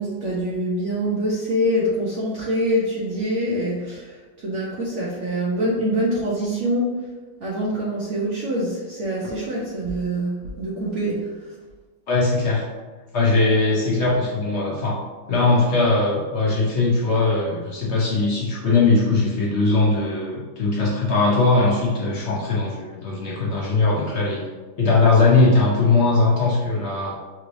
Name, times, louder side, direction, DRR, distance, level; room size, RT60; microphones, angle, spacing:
voice 1, 0.0-6.9 7.4-11.3, equal, 75° right, -5 dB, 0.6 m, -25 dB
voice 2, 12.1-12.6 13.1-15.0 15.3-24.4 24.8-27.1, left 3 dB, 80° left, -5 dB, 0.6 m, -20 dB
5.8 x 3.1 x 2.6 m, 1.3 s
omnidirectional pair, 2.3 m